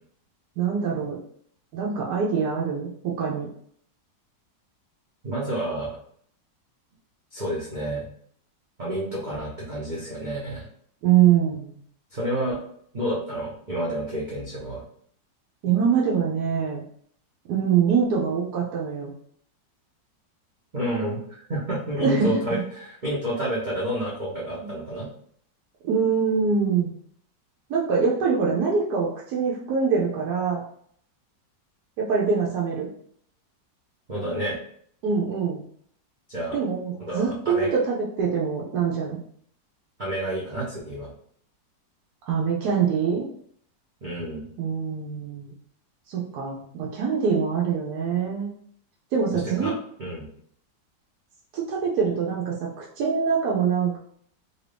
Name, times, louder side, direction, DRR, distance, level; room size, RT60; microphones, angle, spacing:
voice 1, 0.6-1.2 1.7-3.5 11.0-11.8 15.6-16.8 17.5-19.1 22.0-22.6 24.6-24.7 25.8-26.9 27.7-30.6 32.0-32.9 35.0-35.6 36.5-39.2 42.3-43.3 44.6-45.5 46.1-48.5 49.1-49.7 51.5-54.0, right 6 dB, 70° right, -3 dB, 1.0 m, -24 dB
voice 2, 5.2-6.0 7.3-8.1 8.8-10.7 12.1-12.6 12.9-14.8 20.7-25.1 34.1-34.6 36.3-36.6 37.0-37.7 40.0-41.1 44.0-44.5 49.4-50.3, right 1 dB, 50° right, -7 dB, 0.5 m, -29 dB
2.9 x 2.6 x 3.3 m, 0.63 s
omnidirectional pair, 1.9 m